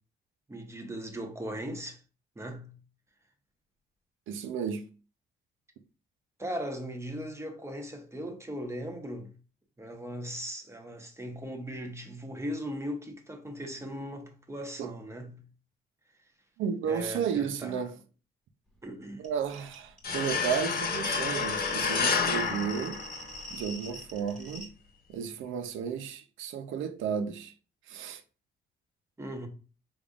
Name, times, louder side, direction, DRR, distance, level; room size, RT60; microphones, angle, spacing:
voice 1, 0.5-2.0 2.4-2.7 6.4-9.3 9.8-15.4 16.9-17.7 18.8-19.3 29.2-29.5, equal, 15° right, 1.1 m, -38 dB
voice 2, 4.3-4.8 14.8-14.9 16.6-17.9 19.2-23.0 23.5-24.7 25.1-27.5 27.9-28.2, right 7 dB, 85° right, 0.6 m, -33 dB
sound 1, 19.2-19.3 19.5-24.7, left 1 dB, 5° left, 1.9 m, -44 dB
sound 2, 20.0-23.6, left 5 dB, 50° left, 1.1 m, -29 dB
5.2 x 3.4 x 2.5 m
cardioid pair, 90°, 20 cm